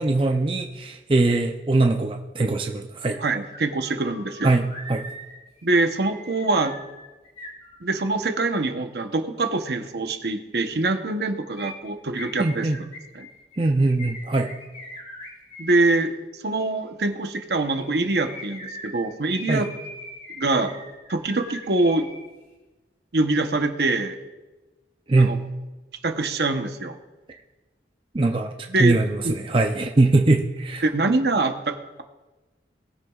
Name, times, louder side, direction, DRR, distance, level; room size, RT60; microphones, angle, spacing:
voice 1, 0.0-3.2 4.4-5.1 12.4-12.8 13.6-14.5 19.5-19.6 25.1-25.4 28.1-28.5 28.8-30.8, right 2 dB, 30° right, 3 dB, 0.5 m, -21 dB
sound 1, 3.1-3.2 3.5-8.3 11.6-15.8 17.6-22.2 22.5-22.6, left 1 dB, 40° left, 2.7 m, -41 dB
voice 2, 3.2-4.6 5.6-6.8 7.8-13.3 15.6-19.7 20.4-20.7 21.1-22.1 23.1-24.2 25.2-25.4 26.0-27.0 28.7-29.0 29.2-29.3 30.8-32.0, right 2 dB, 70° right, 6 dB, 0.9 m, -24 dB
20.0 x 7.9 x 2.4 m, 1.1 s
head